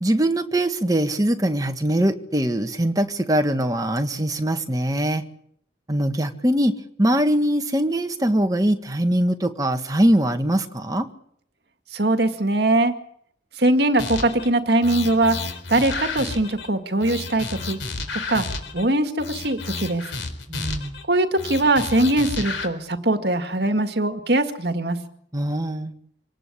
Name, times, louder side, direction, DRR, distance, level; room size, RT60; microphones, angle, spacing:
voice 1, 0.0-5.2 5.9-6.7 7.0-11.1 20.5-21.0 25.3-25.9, right 1 dB, 20° right, 6 dB, 1.7 m, -22 dB
voice 2, 11.9-13.0 13.6-15.4 15.7-17.8 18.3-18.5 18.7-20.1 21.1-25.0, right 2 dB, 60° right, 8 dB, 2.1 m, -21 dB
sound 1, 14.0-14.5 14.8-16.7 17.0-18.8 19.2-21.0 21.4-22.7, left 3 dB, 90° left, 4.2 m, -31 dB
25.5 x 18.5 x 8.6 m, 0.68 s
head